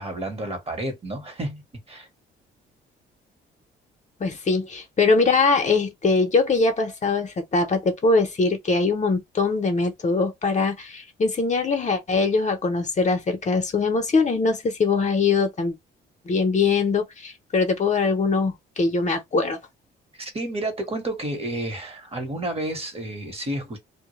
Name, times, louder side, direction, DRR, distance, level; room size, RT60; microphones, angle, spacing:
voice 1, 0.0-1.6 1.9-2.1 20.1-23.8, right 1 dB, 30° right, 1.0 m, -30 dB
voice 2, 4.2-15.7 16.3-19.6, left 4 dB, 35° left, 0.7 m, -22 dB
2.1 x 2.0 x 3.0 m
cardioid pair, 90°, 20 cm